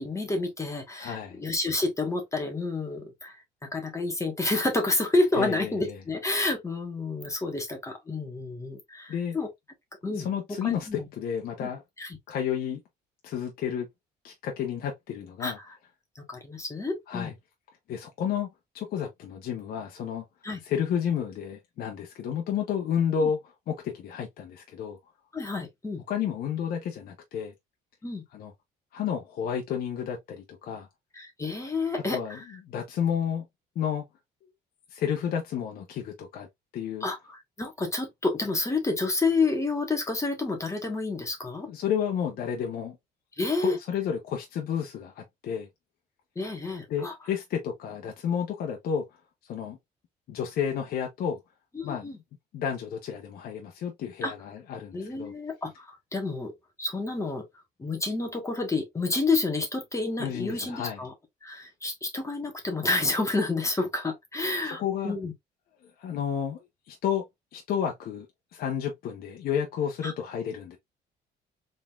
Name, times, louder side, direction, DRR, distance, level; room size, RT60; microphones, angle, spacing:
voice 1, 0.0-3.4 3.7-9.5 10.0-10.3 10.6-11.0 11.6-11.7 12.0-12.2 15.4-15.6 16.1-17.3 20.4-20.6 23.2-23.3 25.3-26.0 28.0-28.2 31.1-32.4 37.0-41.7 43.4-43.8 46.3-47.1 51.7-52.2 54.2-54.3 54.9-56.5 56.8-57.4 57.8-61.1 61.4-65.3 70.0-70.1, left 3 dB, 15° left, 1.4 m, -29 dB
voice 2, 1.0-1.4 5.3-6.0 9.1-9.4 10.1-11.8 12.3-12.8 13.2-13.9 14.2-15.6 17.1-17.3 17.9-18.5 18.7-20.2 20.6-25.0 26.1-27.5 28.3-28.5 28.9-30.9 32.1-33.4 33.7-34.0 34.9-36.5 36.7-37.1 41.7-43.0 43.6-45.7 46.9-49.0 49.4-49.8 50.3-51.4 51.8-52.1 52.5-55.3 60.2-61.0 64.8-65.2 66.0-66.6 66.9-67.2 67.5-68.3 68.5-70.8, left 8 dB, 65° left, 0.9 m, -31 dB
4.1 x 3.6 x 2.4 m
cardioid pair, 110°, 17 cm